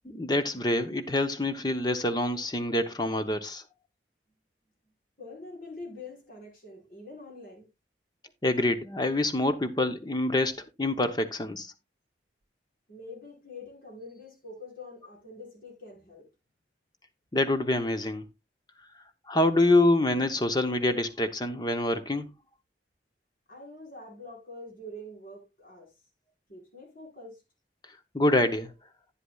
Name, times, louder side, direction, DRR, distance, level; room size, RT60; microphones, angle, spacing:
voice 1, 0.0-3.6 8.4-11.7 17.3-18.3 19.3-22.3 28.1-28.7, left 1 dB, 25° left, 0.8 m, -26 dB
voice 2, 5.2-7.7 12.9-16.3 23.5-25.9 26.5-27.4, left 2 dB, 50° left, 5.1 m, -45 dB
11.0 x 9.8 x 2.3 m
head